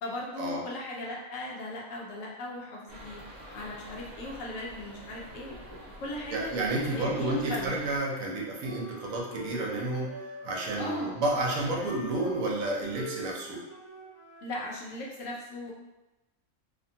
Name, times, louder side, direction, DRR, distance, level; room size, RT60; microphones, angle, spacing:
voice 1, 0.0-3.2 3.5-6.5 6.9-7.8 10.8-11.2 14.4-15.7, left 1 dB, 70° left, -3 dB, 1.0 m, -38 dB
sound 1, 2.9-8.0, equal, 45° right, 0.8 m, -47 dB
voice 2, 6.3-10.1 10.4-13.6, right 2 dB, 85° right, -2 dB, 1.1 m, -30 dB
Wind instrument woodwind instrument, 8.2-14.5, equal, 10° left, 0.9 m, -45 dB
2.8 x 2.1 x 2.7 m, 1.0 s
omnidirectional pair, 1.4 m